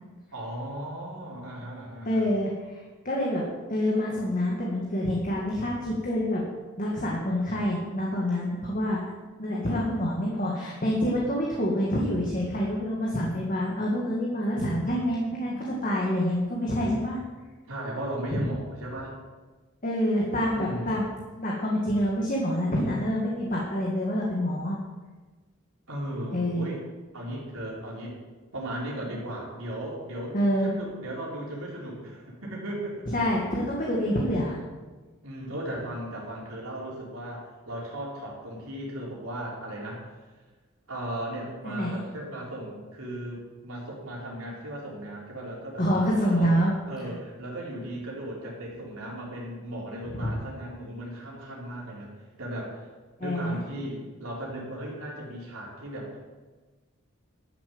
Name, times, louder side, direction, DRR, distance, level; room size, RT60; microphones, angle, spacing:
voice 1, 0.3-2.3 17.7-19.1 20.5-21.1 25.9-26.8 27.1-28.2 28.5-33.2 35.2-40.0 40.9-46.5 46.9-52.1 52.4-52.9 53.2-56.2, right 1 dB, 80° right, -4 dB, 4.0 m, -36 dB
voice 2, 2.1-2.8 3.1-3.4 3.7-6.4 6.8-9.1 9.4-17.2 18.3-18.4 19.8-24.8 26.3-26.7 30.3-30.7 33.1-34.6 41.6-42.0 45.8-46.8 50.1-50.4 53.2-53.6, equal, 40° left, -3 dB, 1.9 m, -27 dB
12.0 x 7.5 x 7.9 m, 1.3 s
head